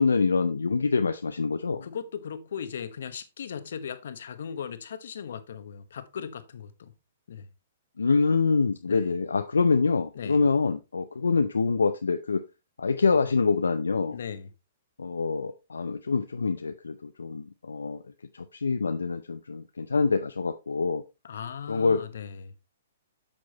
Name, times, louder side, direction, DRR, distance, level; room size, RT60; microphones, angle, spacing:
voice 1, 0.0-1.9 8.0-12.4 12.8-14.2 15.0-18.0 18.3-21.0 21.7-22.0, left 4 dB, 90° left, 0.5 m, -25 dB
voice 2, 1.8-6.9 7.3-7.5 8.9-9.1 10.1-10.5 14.1-14.5 21.2-22.5, left 7 dB, 70° left, 1.0 m, -38 dB
8.7 x 6.2 x 2.9 m
hypercardioid pair, 125°, 0 cm